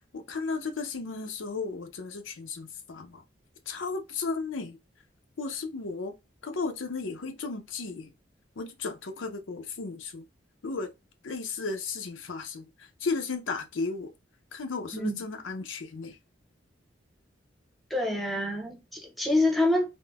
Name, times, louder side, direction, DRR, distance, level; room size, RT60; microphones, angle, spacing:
voice 1, 0.1-3.2 3.7-4.8 5.4-6.1 6.4-8.1 8.6-10.3 10.6-10.9 11.2-14.1 14.5-16.2, left 4 dB, 85° left, 0.6 m, -34 dB
voice 2, 17.9-19.9, left 1 dB, ahead, 0.5 m, -26 dB
3.6 x 2.1 x 2.3 m
head